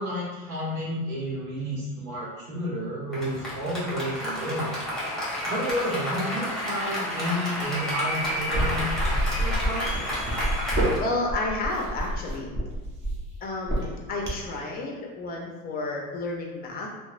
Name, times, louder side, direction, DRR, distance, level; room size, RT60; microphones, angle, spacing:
voice 1, 0.0-4.8 5.4-9.9, equal, 85° right, -5 dB, 0.9 m, -31 dB
Applause, 3.1-11.0, equal, ahead, 1.0 m, -31 dB
sound 1, 8.5-14.6, equal, 25° right, 0.7 m, -28 dB
voice 2, 11.0-12.5 13.4-16.9, left 2 dB, 25° left, 0 dB, 0.4 m, -31 dB
2.8 x 2.0 x 2.4 m, 1.2 s
supercardioid pair, 105°, 42 cm